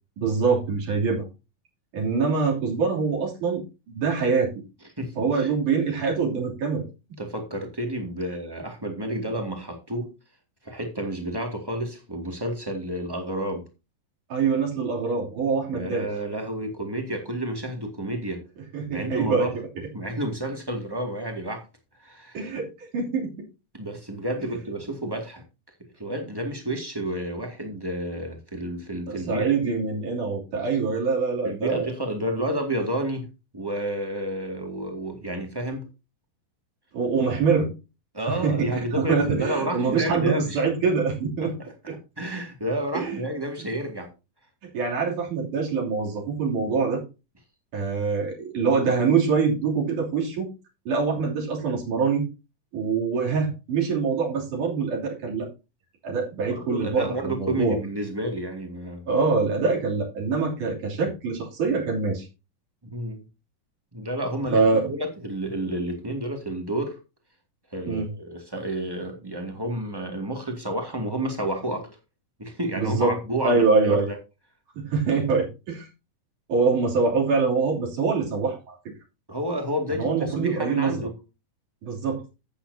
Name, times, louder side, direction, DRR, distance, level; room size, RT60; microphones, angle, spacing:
voice 1, 0.2-1.3 1.9-4.5 5.2-6.9 14.3-16.1 18.7-19.7 22.3-23.4 24.4-24.5 29.1-31.9 36.9-37.7 38.3-41.5 41.9-42.0 42.9-43.2 44.7-47.0 47.7-50.5 50.9-52.2 52.7-55.5 56.0-57.8 59.1-62.3 64.5-64.9 67.9-68.1 72.8-73.2 73.4-74.1 74.7-75.9 76.5-78.8 80.0-81.1 81.8-82.2, right 5 dB, 70° right, 4.5 m, -24 dB
voice 2, 5.0-5.5 7.2-10.1 10.6-13.6 15.7-18.4 18.9-19.5 19.9-21.6 22.0-22.5 23.7-25.4 26.0-29.8 30.6-30.7 31.4-33.3 33.5-35.8 38.1-40.6 41.4-41.5 42.2-44.1 56.5-59.0 62.8-63.2 63.9-67.0 67.7-71.9 72.4-74.1 79.3-81.2, right 1 dB, 10° right, 1.5 m, -30 dB
12.0 x 8.8 x 2.8 m
omnidirectional pair, 3.7 m